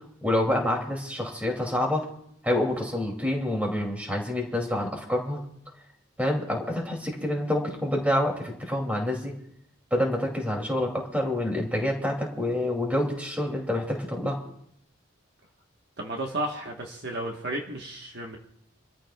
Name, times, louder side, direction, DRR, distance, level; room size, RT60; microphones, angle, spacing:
voice 1, 0.2-2.0 2.4-5.4 6.2-9.3 9.9-14.4, left 1 dB, 5° right, 0 dB, 2.6 m, -27 dB
voice 2, 16.0-18.4, right 1 dB, 50° right, 1 dB, 1.3 m, -33 dB
28.5 x 14.0 x 2.3 m, 0.72 s
head